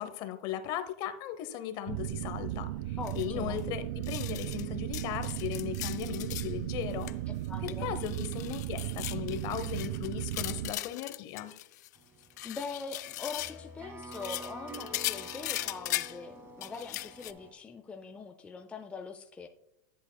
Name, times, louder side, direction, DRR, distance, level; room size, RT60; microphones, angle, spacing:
voice 1, 0.0-7.1 7.6-11.5, left 11 dB, 50° left, 9 dB, 0.9 m, -37 dB
sound 1, 1.9-10.7, right 14 dB, 65° right, 0.4 m, -36 dB
sound 2, 3.0-3.3 3.6-3.7 4.0-4.7 4.9-6.5 6.8-7.1 7.4-12.0 12.2-13.6 14.0-16.2 16.6-17.3, left 16 dB, 80° left, 0.4 m, -39 dB
voice 2, 3.0-3.7 7.5-7.9 12.4-19.5, left 4 dB, 15° left, 6 dB, 0.4 m, -42 dB
sound 3, 12.0-17.5, right 1 dB, 25° right, 1.1 m, -47 dB
10.5 x 7.9 x 2.2 m, 0.83 s
supercardioid pair, 130°, 9 cm